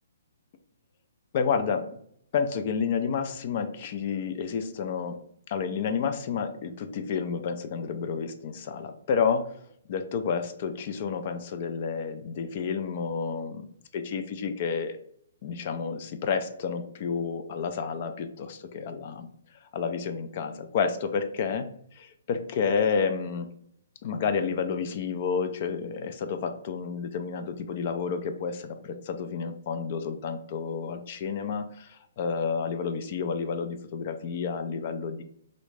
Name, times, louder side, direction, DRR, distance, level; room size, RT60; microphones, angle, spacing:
voice 1, 1.3-1.9 2.3-5.2 5.5-9.5 9.9-13.7 13.9-15.0 15.4-19.3 19.7-21.7 21.9-23.5 24.0-35.2, left 6 dB, 45° left, 8 dB, 0.4 m, -30 dB
3.0 x 2.6 x 3.3 m, 0.68 s
hypercardioid pair, 140°, 0 cm